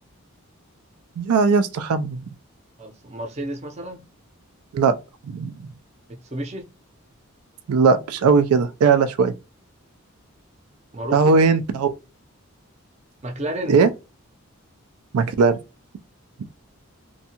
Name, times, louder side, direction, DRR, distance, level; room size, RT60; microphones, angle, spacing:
voice 1, 1.2-2.2 4.7-5.0 5.2-5.7 7.7-9.3 11.1-11.9 13.7-13.9 15.1-15.6, right 5 dB, 90° right, 0.4 m, -18 dB
voice 2, 2.8-4.0 6.1-6.7 10.9-11.4 13.2-13.8, right 1 dB, 30° right, 0.5 m, -31 dB
2.6 x 2.3 x 2.8 m
head